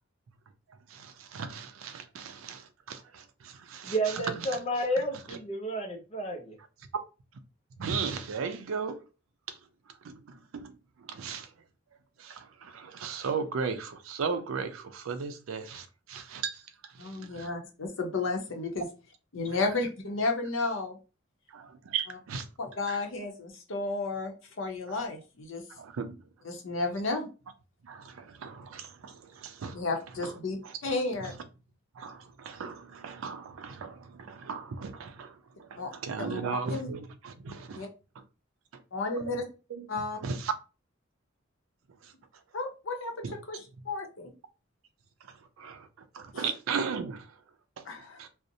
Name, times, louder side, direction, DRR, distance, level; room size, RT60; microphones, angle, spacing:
voice 1, 0.9-4.5 7.8-9.0 9.5-9.6 10.0-10.7 11.1-11.5 12.2-17.5 21.5-22.5 22.9-23.0 25.8-26.2 27.8-29.8 30.2-30.3 32.0-37.9 39.7-39.9 40.2-40.5 42.0-42.1 43.2-43.3 45.6-45.9 46.1-47.3 47.8-47.9 48.2-48.3, right 5 dB, 85° right, 0.4 m, -36 dB
voice 2, 3.8-6.6, right 1 dB, 30° left, 0.4 m, -31 dB
voice 3, 17.0-18.9 19.3-21.0 22.1-22.2 22.6-25.6 26.4-27.3 29.7-31.3 35.7-35.9 36.2-36.4 36.7-36.9 37.7-37.9 38.9-39.4 39.9-40.2 42.5-44.3 46.3-46.5 47.8-48.2, left 3 dB, 70° left, 0.7 m, -33 dB
2.6 x 2.0 x 2.6 m
head